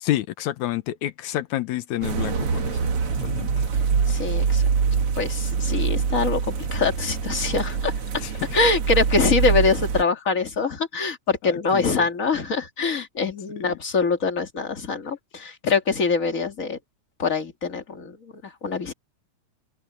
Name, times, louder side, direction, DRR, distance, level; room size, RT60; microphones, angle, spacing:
voice 1, 0.0-3.6 8.2-8.3 11.4-12.1, left 14 dB, 80° left, 2.2 m, -29 dB
sound 1, 2.0-10.0, right 6 dB, 55° right, 2.4 m, -24 dB
voice 2, 4.1-4.6 5.1-7.9 8.5-16.8 17.2-18.9, left 4 dB, 30° left, 2.2 m, -24 dB
omnidirectional pair, 3.4 m